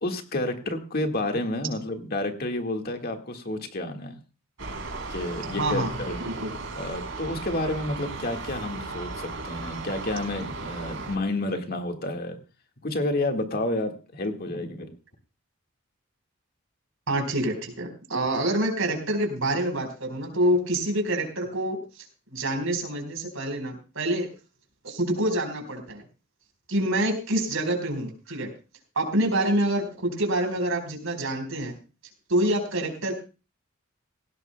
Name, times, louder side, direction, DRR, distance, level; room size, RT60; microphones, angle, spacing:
voice 1, 0.0-4.2 5.1-6.2 6.8-12.4 12.8-15.0, left 1 dB, 50° left, 4 dB, 1.7 m, -30 dB
sound 1, 4.6-11.2, right 3 dB, 70° right, 3.4 m, -36 dB
voice 2, 5.6-5.9 6.2-6.5 17.1-24.3 24.8-26.0 26.7-28.5 29.0-31.7 32.3-33.1, right 1 dB, 90° right, 4 dB, 4.3 m, -26 dB
18.0 x 17.0 x 2.2 m, 0.33 s
head